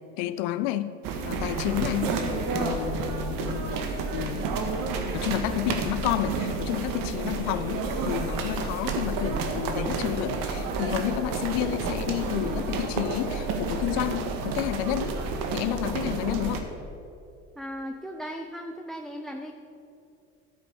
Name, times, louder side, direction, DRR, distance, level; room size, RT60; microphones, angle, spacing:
voice 1, 0.2-1.0 1.2-2.2 2.5-4.5 5.1-15.2 15.5-16.7, left 14 dB, 85° left, 13 dB, 0.6 m, -30 dB
sound 1, 1.0-16.6, right 3 dB, 70° right, 1.8 m, -30 dB
voice 2, 17.6-19.5, equal, ahead, 4 dB, 0.8 m, -37 dB
12.5 x 8.9 x 7.1 m, 2.7 s
supercardioid pair, 85°, 35 cm